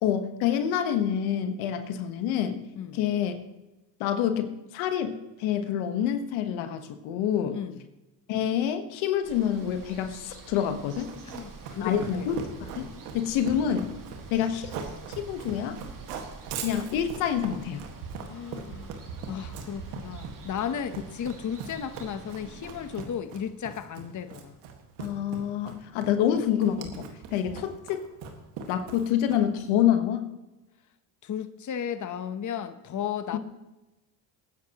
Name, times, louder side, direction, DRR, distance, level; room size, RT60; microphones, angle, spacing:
voice 1, 0.0-2.6 2.9-3.4 4.0-7.6 8.3-11.1 11.8-12.9 13.1-14.0 14.3-14.7 15.2-15.8 16.6-17.8 25.0-28.0 28.7-30.3 33.3-33.4, left 9 dB, 80° left, 8 dB, 1.3 m, -27 dB
voice 2, 7.5-7.8 11.2-12.3 18.2-19.0 19.3-24.6 27.4-27.6 31.2-33.4, left 8 dB, 40° left, 11 dB, 0.9 m, -34 dB
Water, 9.2-23.0, right 4 dB, 40° right, 2.3 m, -47 dB
Run, 10.9-29.6, right 6 dB, 90° right, 1.8 m, -40 dB
20.0 x 10.0 x 3.0 m, 1.0 s
supercardioid pair, 70°, 47 cm